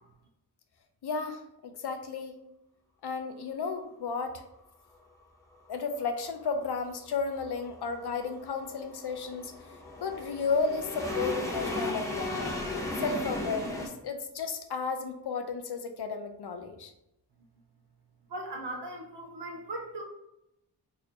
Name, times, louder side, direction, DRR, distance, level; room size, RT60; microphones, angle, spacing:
voice 1, 1.0-2.3 3.0-4.4 5.7-12.5 13.0-16.9, left 4 dB, 75° left, 7 dB, 0.6 m, -33 dB
sound 1, 6.9-13.9, left 2 dB, 10° left, 0.7 m, -35 dB
voice 2, 18.3-20.0, right 1 dB, 90° right, 0 dB, 0.9 m, -38 dB
4.0 x 2.5 x 2.8 m, 0.85 s
wide cardioid pair, 105°, 40 cm